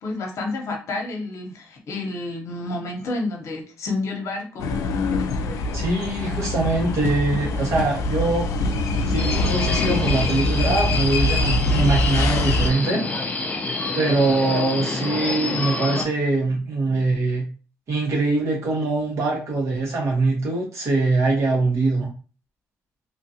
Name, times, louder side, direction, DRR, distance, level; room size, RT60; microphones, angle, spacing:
voice 1, 0.0-4.7, left 2 dB, 65° left, 1 dB, 0.9 m, -29 dB
sound 1, 4.6-12.7, left 2 dB, 85° left, 0.4 m, -23 dB
voice 2, 5.7-8.5 9.1-13.1 13.9-17.5 17.9-22.1, right 3 dB, 60° right, -3 dB, 1.4 m, -23 dB
Subway metro underground, 9.2-16.0, left 3 dB, 25° left, 0.5 m, -28 dB
3.0 x 2.5 x 2.8 m, 0.36 s
cardioid pair, 105°, 6 cm